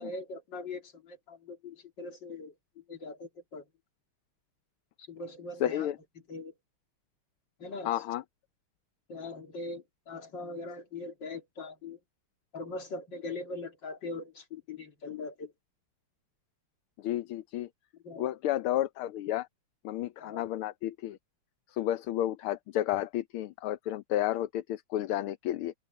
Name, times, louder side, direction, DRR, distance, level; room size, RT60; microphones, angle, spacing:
voice 1, 0.0-3.6 5.0-5.9 6.3-6.5 7.6-8.0 9.1-12.0 12.5-15.5 18.0-18.3 20.2-20.4, left 3 dB, 55° left, 3.2 m, -41 dB
voice 2, 5.6-6.0 7.8-8.2 17.0-17.7 18.2-19.5 19.8-21.2 21.7-25.7, left 13 dB, 80° left, 1.7 m, -31 dB
omnidirectional pair, 2.4 m